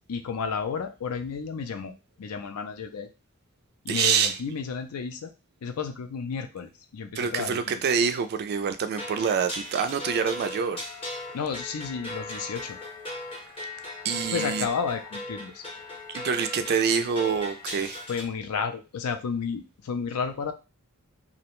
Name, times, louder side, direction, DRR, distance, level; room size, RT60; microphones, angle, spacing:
voice 1, 0.1-1.9 2.2-3.1 3.8-5.3 5.6-7.8 11.3-12.8 14.3-15.6 17.8-20.5, left 6 dB, 80° left, 0.4 m, -32 dB
voice 2, 3.9-4.4 7.2-10.9 14.0-14.7 16.1-18.0, right 6 dB, 45° right, 0.3 m, -26 dB
sound 1, 8.9-18.2, left 2 dB, 25° left, 0.8 m, -38 dB
2.6 x 2.1 x 2.9 m
head